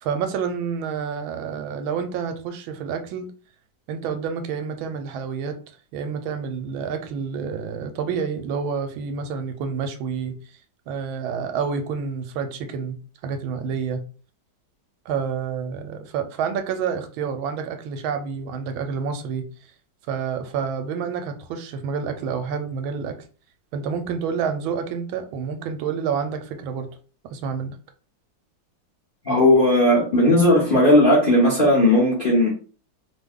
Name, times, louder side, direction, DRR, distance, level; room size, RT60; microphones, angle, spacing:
voice 1, 0.0-3.3 3.9-5.6 5.9-10.3 10.9-13.0 13.2-14.0 15.1-19.4 20.1-23.2 23.7-26.9 27.3-27.8, right 6 dB, 80° right, 8 dB, 1.4 m, -28 dB
voice 2, 29.2-32.5, left 1 dB, 45° left, -5 dB, 0.6 m, -16 dB
3.2 x 2.2 x 3.5 m, 0.38 s
omnidirectional pair, 2.2 m